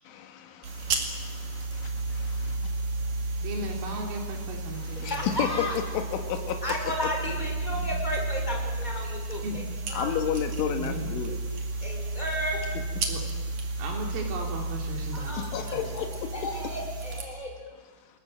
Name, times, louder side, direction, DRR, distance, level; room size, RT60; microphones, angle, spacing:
voice 1, 0.1-2.6 4.8-5.5 5.9-7.1 10.0-11.4 15.3-16.5 17.3-17.4, left 9 dB, 75° left, 5 dB, 4.1 m, -33 dB
sound 1, 0.6-17.2, right 2 dB, 45° right, 2.9 m, -33 dB
voice 2, 3.4-5.5 7.7-7.8 9.4-9.6 10.7-11.1 13.1-13.2 13.8-16.0, right 2 dB, 85° right, 1 dB, 5.9 m, -37 dB
voice 3, 4.9-5.8 6.6-9.4 9.9-10.1 11.8-12.6 15.1-15.8 16.3-17.5, left 1 dB, 10° left, 0 dB, 4.9 m, -33 dB
29.5 x 19.5 x 7.7 m, 1.4 s
omnidirectional pair, 5.7 m